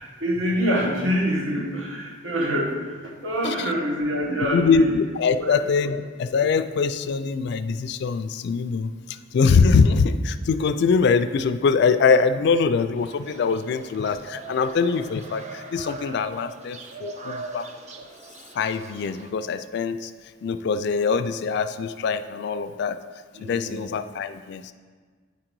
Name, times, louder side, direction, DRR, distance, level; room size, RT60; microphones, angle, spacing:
voice 1, 0.0-4.9 5.4-5.9 23.3-23.9, equal, 80° right, 0 dB, 1.2 m, -26 dB
voice 2, 4.5-17.7 18.5-20.1 20.4-23.0 23.4-24.7, left 5 dB, 55° left, 12 dB, 0.3 m, -23 dB
sound 1, 13.0-19.3, right 3 dB, 35° right, 0.5 m, -41 dB
9.2 x 3.8 x 4.6 m, 1.5 s
head